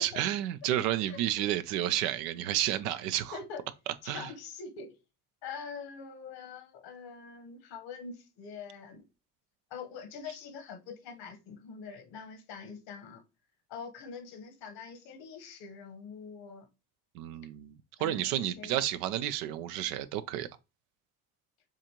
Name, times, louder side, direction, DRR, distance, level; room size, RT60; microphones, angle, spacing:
voice 1, 0.0-3.4 4.1-4.3 17.1-20.5, right 12 dB, 85° right, 0.6 m, -31 dB
voice 2, 1.0-1.5 3.3-3.6 4.0-4.9 5.4-9.0 9.7-13.2 13.7-16.7 18.0-18.8, left 5 dB, 70° left, 1.2 m, -44 dB
7.2 x 2.6 x 2.9 m
hypercardioid pair, 65°, 45 cm